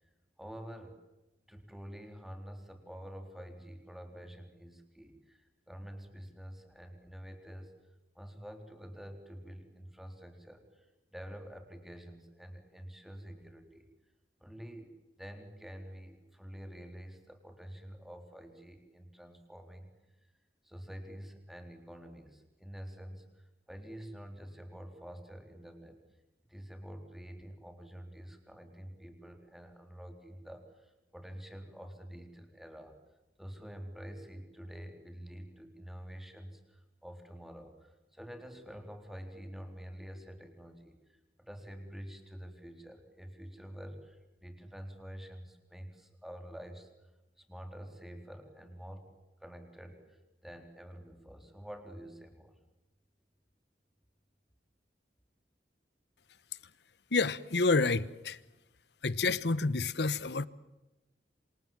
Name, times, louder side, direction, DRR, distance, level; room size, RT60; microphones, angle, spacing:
voice 1, 0.4-1.0 1.5-7.7 8.1-13.9 14.4-19.9 20.6-26.0 26.5-32.9 33.4-46.9 47.4-49.1 49.4-52.5, equal, ahead, 3.8 m, -48 dB
voice 2, 57.1-58.4 59.0-60.5, left 3 dB, 70° left, 1.1 m, -29 dB
28.0 x 27.0 x 7.4 m
head